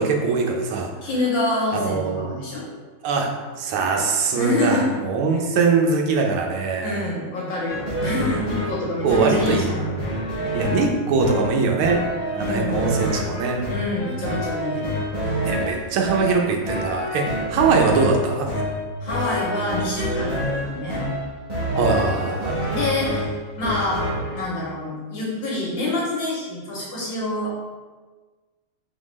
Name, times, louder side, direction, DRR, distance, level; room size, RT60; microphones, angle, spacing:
voice 1, 0.0-0.9 1.7-2.4 3.0-3.3 3.6-7.0 9.0-9.7 10.5-12.0 12.3-13.6 15.4-18.5 21.7-22.7, right 4 dB, 80° right, 2 dB, 1.5 m, -22 dB
voice 2, 1.0-2.6 4.3-5.0 5.3-5.5 6.8-10.0 12.4-12.9 13.7-14.9 19.0-21.0 22.7-23.3 23.6-27.7, left 2 dB, 70° left, -5 dB, 1.5 m, -27 dB
sound 1, 7.7-24.4, equal, 30° right, 0.9 m, -27 dB
4.3 x 3.3 x 3.1 m, 1.3 s
omnidirectional pair, 2.4 m